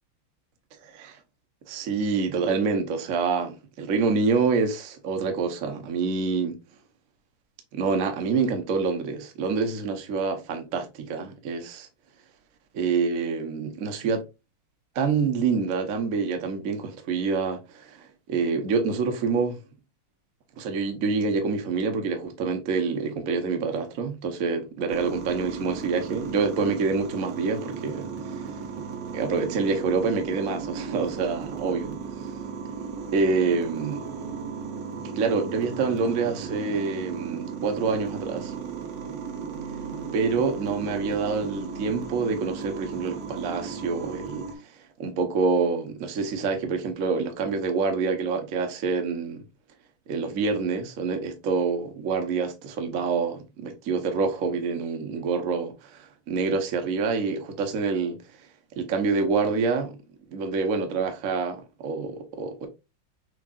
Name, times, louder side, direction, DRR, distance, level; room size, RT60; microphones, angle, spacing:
voice 1, 0.8-1.2 1.7-6.6 7.7-11.9 12.7-14.3 14.9-19.6 20.6-28.5 29.1-32.0 33.1-34.1 35.0-38.5 40.1-44.7 45.0-49.4 50.1-58.2 58.8-59.9 60.3-62.7, right 4 dB, 50° right, 1.1 m, -27 dB
sound 1, 24.9-44.6, right 5 dB, 65° right, 1.5 m, -35 dB
6.4 x 3.2 x 2.4 m
omnidirectional pair, 2.3 m